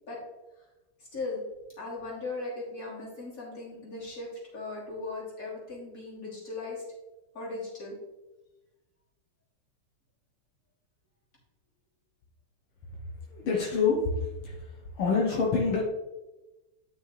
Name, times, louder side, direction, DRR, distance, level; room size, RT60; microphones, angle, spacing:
voice 1, 1.1-1.4 1.8-6.8 7.3-8.0, left 3 dB, 40° left, -5 dB, 3.2 m, -38 dB
voice 2, 13.3-15.8, left 4 dB, 75° left, -2 dB, 1.9 m, -27 dB
10.0 x 6.3 x 3.2 m, 1.1 s
omnidirectional pair, 2.4 m